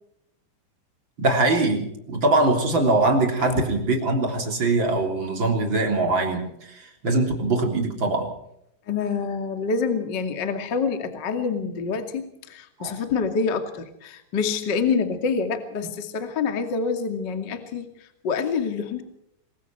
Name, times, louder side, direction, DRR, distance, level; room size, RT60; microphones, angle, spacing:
voice 1, 1.2-8.3 12.8-12.9, right 2 dB, 25° right, 3 dB, 3.3 m, -22 dB
voice 2, 8.9-19.0, left 5 dB, 40° left, 6 dB, 1.7 m, -27 dB
25.5 x 22.0 x 4.6 m, 0.76 s
omnidirectional pair, 5.8 m